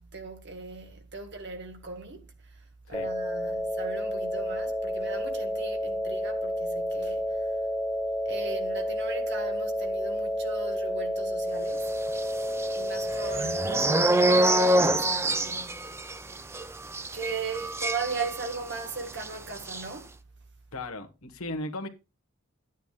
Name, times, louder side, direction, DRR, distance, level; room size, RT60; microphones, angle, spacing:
voice 1, 0.0-7.6 8.3-12.0 12.5-16.0 17.1-20.2, right 4 dB, 50° right, 1.7 m, -38 dB
sound 1, 2.9-14.9, equal, 5° left, 1.9 m, -30 dB
sound 2, 12.1-18.8 19.1-19.3 19.6-19.8, right 1 dB, 10° right, 0.5 m, -26 dB
voice 2, 20.7-21.9, left 1 dB, 70° left, 1.5 m, -36 dB
13.5 x 9.2 x 2.5 m
head